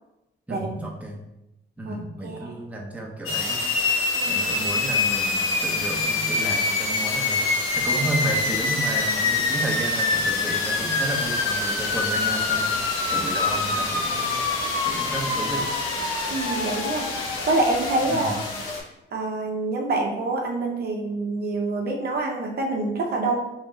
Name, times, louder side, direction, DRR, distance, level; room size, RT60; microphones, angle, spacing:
voice 1, 0.5-1.2 1.8-3.6 4.3-7.5 7.7-14.3 14.8-15.7 18.1-18.4, right 2 dB, 5° right, -2 dB, 0.8 m, -32 dB
voice 2, 2.2-2.6 4.1-4.4 16.3-17.1 17.5-18.4 19.1-23.4, right 2 dB, 55° right, 0 dB, 0.7 m, -26 dB
sound 1, 3.3-18.8, left 3 dB, 85° left, 0.8 m, -25 dB
3.2 x 2.9 x 3.5 m, 0.91 s
cardioid pair, 90°, 20 cm